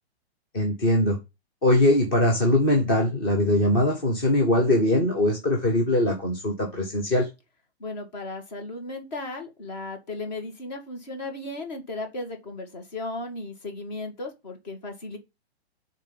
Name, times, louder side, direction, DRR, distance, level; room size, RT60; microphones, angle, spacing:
voice 1, 0.5-1.2 1.6-7.3, left 1 dB, 20° left, 0.9 m, -21 dB
voice 2, 7.8-15.2, left 2 dB, 40° left, 2.1 m, -35 dB
7.1 x 3.8 x 5.7 m
hypercardioid pair, 170°, 33 cm